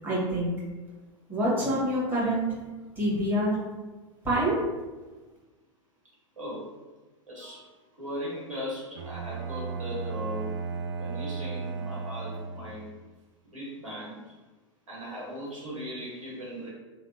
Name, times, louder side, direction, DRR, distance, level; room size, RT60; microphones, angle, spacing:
voice 1, 0.0-0.5 1.3-2.6 3.0-3.5 4.2-4.6, right 1 dB, 10° right, -8 dB, 1.4 m, -26 dB
voice 2, 6.4-6.7 7.3-7.7 8.0-10.5 11.0-12.9 13.5-14.2 14.9-16.7, equal, 85° right, -6 dB, 1.1 m, -38 dB
Bowed string instrument, 8.9-12.9, right 5 dB, 60° right, 0.4 m, -35 dB
3.3 x 2.1 x 2.6 m, 1.2 s
figure-of-eight pair, 90°, 17 cm